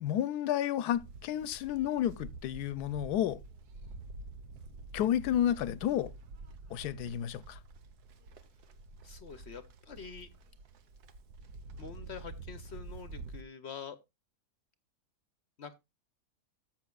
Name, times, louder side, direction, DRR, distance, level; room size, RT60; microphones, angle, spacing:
voice 1, 0.0-3.4 4.9-6.1 6.7-7.6, left 11 dB, 80° left, 1.2 m, -31 dB
Livestock farm animals working animals, 0.9-13.4, right 3 dB, 85° right, 1.5 m, -48 dB
voice 2, 9.0-10.3 11.8-14.0 15.6-15.7, left 6 dB, 55° left, 0.8 m, -46 dB
13.5 x 7.5 x 2.3 m
omnidirectional pair, 1.6 m